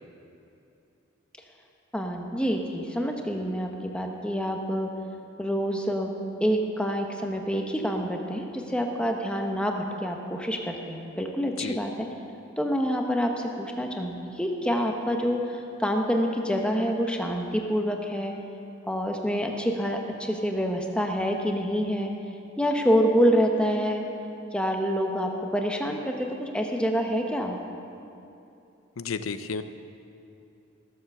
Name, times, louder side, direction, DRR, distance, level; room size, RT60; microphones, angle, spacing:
voice 1, 1.9-4.9 5.4-6.1 6.4-12.1 12.6-18.3 18.9-22.1 22.6-24.0 24.5-27.6, equal, 5° left, 2 dB, 0.9 m, -27 dB
voice 2, 29.0-29.6, left 5 dB, 85° left, 11 dB, 0.6 m, -32 dB
16.0 x 7.3 x 6.9 m, 2.7 s
head